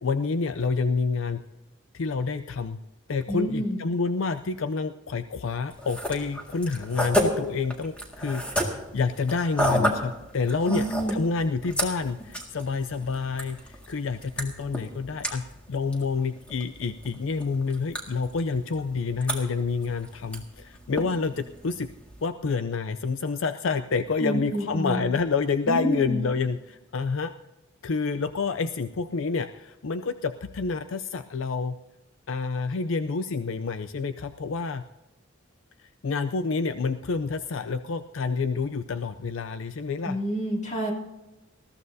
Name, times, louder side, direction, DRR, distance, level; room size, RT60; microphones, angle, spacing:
voice 1, 0.0-1.4 1.9-2.8 3.1-21.9 22.2-27.3 27.8-31.8 32.3-34.8 35.8-40.2, left 4 dB, 70° left, 9 dB, 0.5 m, -28 dB
voice 2, 3.3-3.8 10.7-11.2 24.2-25.0 25.7-26.2 40.0-40.9, right 1 dB, 35° left, -1 dB, 2.7 m, -28 dB
sound 1, 5.7-22.3, equal, 5° left, 1.9 m, -33 dB
20.5 x 14.5 x 2.7 m, 1.0 s
head